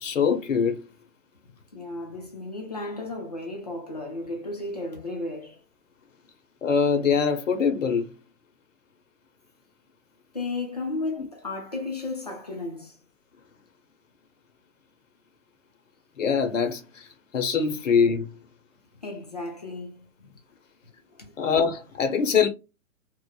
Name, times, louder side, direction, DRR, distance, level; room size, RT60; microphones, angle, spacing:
voice 1, 0.0-0.8 6.6-8.1 16.2-17.1 17.3-18.3 21.4-22.5, left 6 dB, 65° left, 0.7 m, -23 dB
voice 2, 1.7-5.6 10.3-13.0 19.0-20.3 21.2-21.3, left 2 dB, 30° left, 0.5 m, -34 dB
3.0 x 2.0 x 2.2 m
hypercardioid pair, 175°, 41 cm